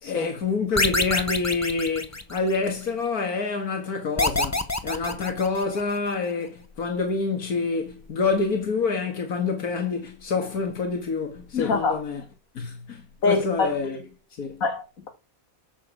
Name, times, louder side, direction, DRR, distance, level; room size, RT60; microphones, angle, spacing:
voice 1, 0.0-12.2 12.5-14.0 14.4-14.6, left 4 dB, 80° left, 2.2 m, -27 dB
sound 1, 0.8-2.7 4.2-6.0, left 2 dB, 15° left, 0.9 m, -26 dB
voice 2, 11.5-12.0 13.2-13.7 14.6-15.1, left 4 dB, 65° left, 2.5 m, -24 dB
8.6 x 7.1 x 7.4 m
omnidirectional pair, 1.5 m